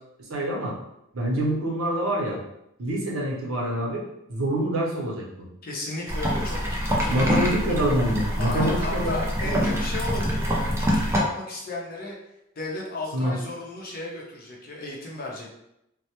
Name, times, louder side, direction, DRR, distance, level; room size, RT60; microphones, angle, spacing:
voice 1, 0.2-0.8 1.1-2.4 2.8-4.0 4.3-5.5 7.1-9.7 13.1-13.3, right 1 dB, 80° right, -3 dB, 0.7 m, -26 dB
voice 2, 5.6-6.6 6.8-7.5 8.4-12.2 12.6-15.5, left 2 dB, 45° left, -2 dB, 0.6 m, -34 dB
sound 1, 6.1-11.2, equal, 15° right, 0.3 m, -25 dB
2.1 x 2.0 x 2.8 m, 0.82 s
head